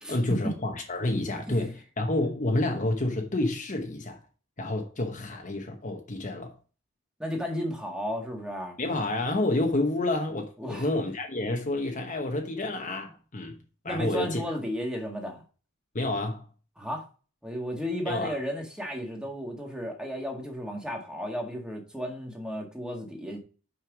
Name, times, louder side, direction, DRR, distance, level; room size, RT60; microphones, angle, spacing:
voice 1, 0.1-4.2 4.6-6.5 8.8-13.6 13.8-14.4 15.9-16.5 18.1-18.4, left 2 dB, 35° left, 1.1 m, -29 dB
voice 2, 7.2-8.8 10.6-10.9 13.9-15.4 16.8-17.1 17.4-23.4, equal, 5° right, 1.8 m, -33 dB
6.0 x 5.6 x 6.1 m
head